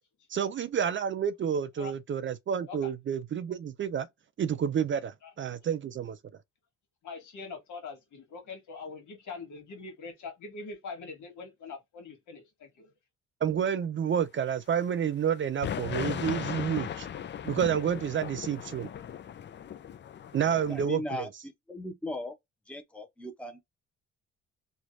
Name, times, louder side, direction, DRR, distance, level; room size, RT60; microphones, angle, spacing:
voice 1, 0.3-4.1 4.4-6.2 13.4-17.1 17.4-18.9 20.3-21.3, right 8 dB, 40° right, 0.5 m, -29 dB
voice 2, 7.0-12.9, left 4 dB, 75° left, 1.6 m, -43 dB
sound 1, 15.6-20.9, left 9 dB, 40° left, 0.5 m, -37 dB
voice 3, 20.7-22.4 22.7-23.6, left 1 dB, 5° left, 0.8 m, -38 dB
3.2 x 2.4 x 2.6 m
cardioid pair, 90°, 30 cm